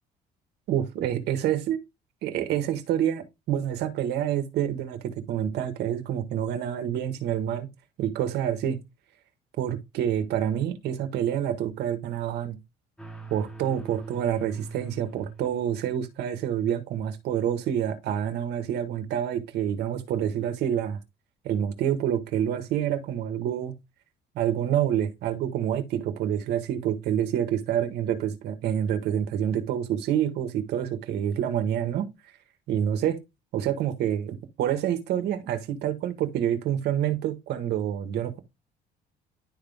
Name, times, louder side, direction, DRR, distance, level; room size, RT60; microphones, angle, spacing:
voice 1, 0.7-1.8 2.2-7.7 8.0-8.8 9.6-12.6 13.3-21.0 21.4-23.7 24.4-32.1 32.7-33.2 33.5-38.4, right 10 dB, 80° right, 1.7 m, -27 dB
sound 1, 13.0-16.4, right 4 dB, 5° left, 1.7 m, -43 dB
11.5 x 3.8 x 3.6 m
cardioid pair, 110°, 17 cm